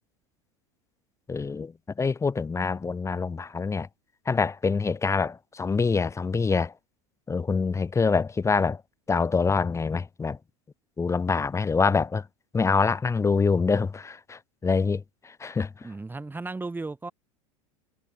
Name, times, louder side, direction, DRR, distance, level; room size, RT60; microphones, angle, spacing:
voice 1, 1.3-1.7 2.0-3.9 4.3-6.7 7.3-8.8 9.1-10.4 11.0-12.2 12.5-15.0 15.4-15.7, left 4 dB, 15° left, 1.8 m, -25 dB
voice 2, 15.8-17.1, right 3 dB, 10° right, 4.0 m, -35 dB
figure-of-eight pair, 80°, 17 cm